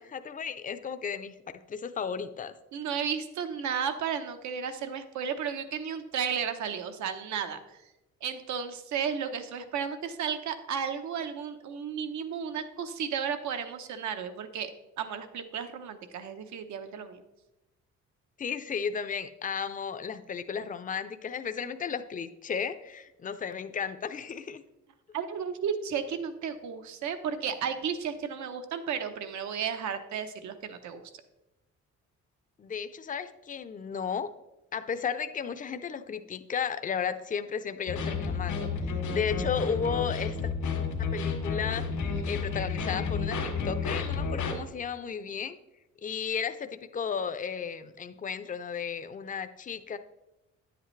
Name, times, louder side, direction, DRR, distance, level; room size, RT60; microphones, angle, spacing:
voice 1, 0.0-1.4 1.7-2.5 18.4-24.6 32.6-34.3 34.7-40.5 41.0-41.8 42.3-43.4 43.6-45.6 46.0-50.0, left 6 dB, 25° left, 11 dB, 0.5 m, -34 dB
voice 2, 2.7-7.6 8.2-14.7 15.0-17.2 25.1-31.0, right 7 dB, 70° right, 8 dB, 0.9 m, -33 dB
sound 1, 37.9-44.5, left 5 dB, 85° left, 2.0 m, -31 dB
9.6 x 8.0 x 3.2 m, 0.96 s
cardioid pair, 90°, 30 cm